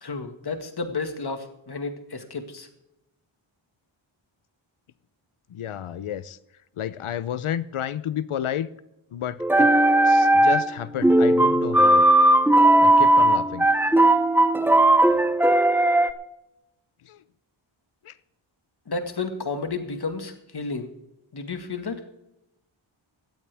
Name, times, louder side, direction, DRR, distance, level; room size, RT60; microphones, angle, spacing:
voice 1, 0.0-2.7 18.9-20.9 21.3-22.0, left 4 dB, 50° left, 6 dB, 1.9 m, -32 dB
voice 2, 5.5-6.4 6.8-8.7 9.1-9.7 10.0-12.0 12.8-13.7 17.0-17.2 18.0-18.1, left 10 dB, 80° left, 16 dB, 0.8 m, -31 dB
sound 1, 9.4-10.8 11.0-16.1, right 1 dB, 5° right, 0.6 m, -17 dB
17.5 x 13.5 x 3.5 m, 0.89 s
wide cardioid pair, 110°, 49 cm